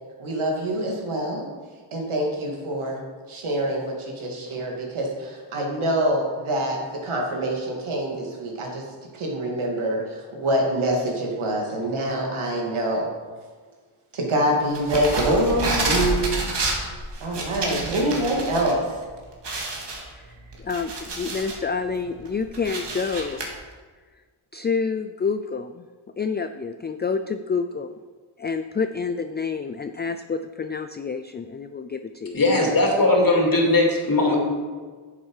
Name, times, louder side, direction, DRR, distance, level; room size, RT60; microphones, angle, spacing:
voice 1, 0.2-1.5 1.9-3.0 3.3-8.8 9.1-13.1 14.1-16.5 17.2-19.0, right 1 dB, 85° right, 0 dB, 2.4 m, -25 dB
sound 1, 14.7-18.7 19.0-19.1 19.4-21.6 22.1-23.5, right 2 dB, 60° right, 2.1 m, -28 dB
voice 2, 20.6-23.5 24.5-25.8 26.2-28.0 28.4-32.4, left 5 dB, 25° left, 9 dB, 0.3 m, -28 dB
voice 3, 32.3-34.4, left 2 dB, 45° left, 0 dB, 2.6 m, -19 dB
10.0 x 7.4 x 4.8 m, 1.5 s
wide cardioid pair, 90°, 48 cm